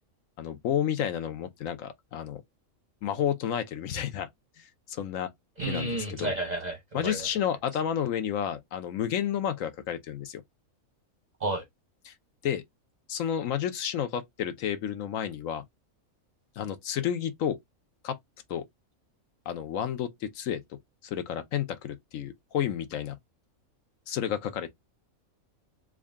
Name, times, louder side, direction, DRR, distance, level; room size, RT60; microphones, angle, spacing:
voice 1, 0.4-2.4 3.0-4.3 4.6-5.3 5.7-5.9 6.2-6.3 6.9-10.4 12.1-12.2 12.4-12.6 13.1-15.6 16.6-17.6 18.0-18.2 18.5-18.6 19.5-20.6 21.0-23.2 24.1-24.7, left 9 dB, 70° left, 1.0 m, -31 dB
voice 2, 5.6-7.3 11.4-11.6, right 2 dB, 40° right, 0.7 m, -31 dB
3.6 x 2.2 x 3.5 m
omnidirectional pair, 1.5 m